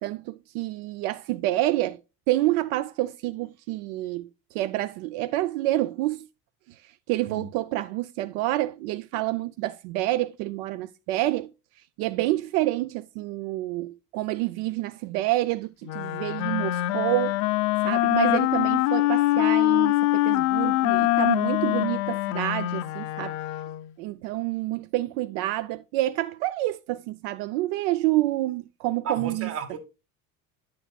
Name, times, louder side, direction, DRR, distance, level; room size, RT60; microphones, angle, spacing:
voice 1, 0.0-2.0 2.3-6.3 7.1-11.5 12.0-17.4 17.8-23.4 24.0-29.5, right 17 dB, 85° right, 0.5 m, -28 dB
Wind instrument woodwind instrument, 15.8-23.9, left 17 dB, 60° left, 0.5 m, -24 dB
voice 2, 29.1-29.8, right 6 dB, 45° right, 1.3 m, -33 dB
9.9 x 6.8 x 2.2 m
cardioid pair, 175°, 33 cm